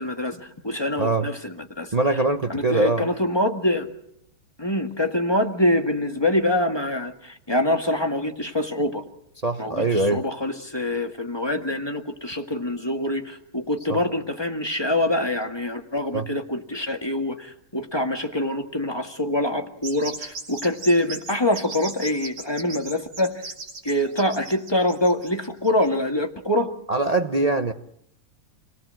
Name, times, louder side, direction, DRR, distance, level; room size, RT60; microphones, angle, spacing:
voice 1, 0.0-1.9 2.5-3.9 4.6-9.0 9.6-23.3 23.8-26.7, left 1 dB, 15° left, 4 dB, 1.6 m, -25 dB
voice 2, 1.9-3.1 9.4-10.2 13.9-14.0 16.1-16.3 26.9-27.7, right 2 dB, 50° right, 7 dB, 0.4 m, -22 dB
sound 1, 19.8-25.9, right 3 dB, 85° right, 4.3 m, -37 dB
28.5 x 18.5 x 7.6 m, 0.74 s
omnidirectional pair, 2.4 m